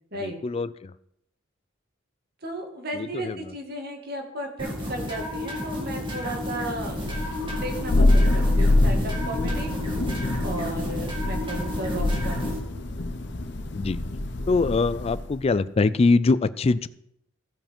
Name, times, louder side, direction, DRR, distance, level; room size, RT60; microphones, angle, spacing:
voice 1, 0.1-0.9 2.9-3.5 13.7-14.0 14.5-16.9, left 3 dB, 30° left, 16 dB, 0.3 m, -23 dB
voice 2, 2.4-9.8 10.4-12.5, right 1 dB, 50° right, 3 dB, 1.8 m, -35 dB
sound 1, 4.6-12.6, left 1 dB, 25° right, 1.9 m, -32 dB
Thunder, 6.9-15.3, left 2 dB, 60° left, 0.9 m, -25 dB
15.0 x 5.1 x 5.2 m, 0.76 s
head